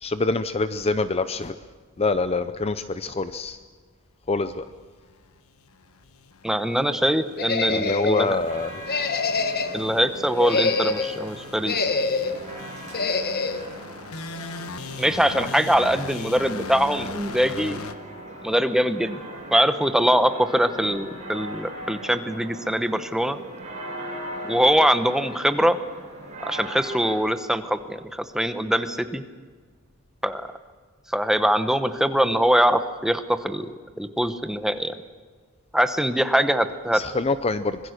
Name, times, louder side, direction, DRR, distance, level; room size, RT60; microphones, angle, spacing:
voice 1, 0.0-1.6 2.0-3.6 4.3-4.7 7.7-8.7 15.4-15.5 36.9-37.8, left 3 dB, 30° left, 12 dB, 0.6 m, -25 dB
sound 1, 5.6-17.9, left 4 dB, 75° left, 1.3 m, -40 dB
voice 2, 6.4-8.4 9.7-11.8 15.0-17.8 18.4-19.2 19.5-23.4 24.4-25.8 26.5-29.2 30.2-30.4 31.1-34.9 35.7-37.0, equal, ahead, 9 dB, 1.0 m, -22 dB
sound 2, 7.4-8.3 8.9-9.8 10.3-11.2 11.6-12.4 12.9-13.6, left 4 dB, 45° left, 1.3 m, -25 dB
sound 3, 8.2-27.1, right 1 dB, 35° right, 6.7 m, -40 dB
25.0 x 21.0 x 6.6 m, 1.5 s
head